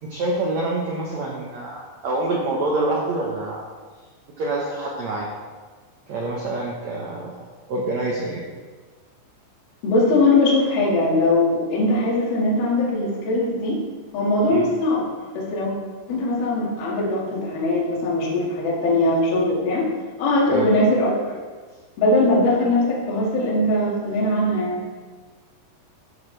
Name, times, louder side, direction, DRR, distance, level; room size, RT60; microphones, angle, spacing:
voice 1, 0.0-3.6 4.4-5.3 6.1-7.3 7.7-8.4 14.5-14.7 20.5-20.7, right 2 dB, 80° right, -2 dB, 1.6 m, -26 dB
voice 2, 9.8-13.8 14.1-15.0 15.3-15.7 16.1-19.9 20.2-21.4 22.0-24.9, left 2 dB, 60° left, -5 dB, 3.8 m, -20 dB
12.5 x 10.5 x 3.4 m, 1.5 s
omnidirectional pair, 5.2 m